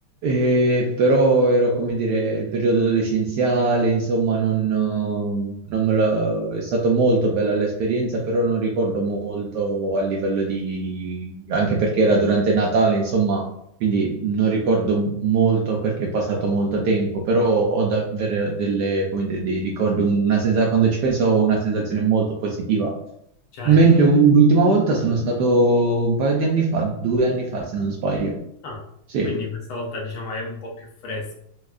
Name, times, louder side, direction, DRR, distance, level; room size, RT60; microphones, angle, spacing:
voice 1, 0.2-13.4 13.8-22.9 23.6-28.4 29.1-29.3, right 3 dB, 75° right, -2 dB, 0.9 m, -20 dB
voice 2, 29.2-31.3, left 3 dB, 85° left, -1 dB, 1.7 m, -32 dB
4.3 x 2.3 x 2.4 m, 0.75 s
omnidirectional pair, 2.2 m